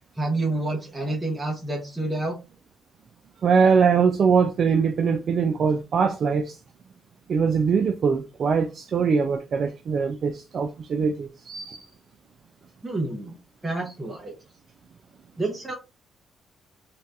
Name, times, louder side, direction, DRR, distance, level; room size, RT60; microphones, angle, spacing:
voice 1, 0.2-2.4 12.8-13.4 13.6-14.3 15.4-15.7, right 2 dB, 15° right, 0.8 m, -28 dB
voice 2, 3.4-6.6 7.3-11.9, right 6 dB, 55° right, 0.3 m, -22 dB
2.8 x 2.3 x 3.3 m
cardioid pair, 90°, 0 cm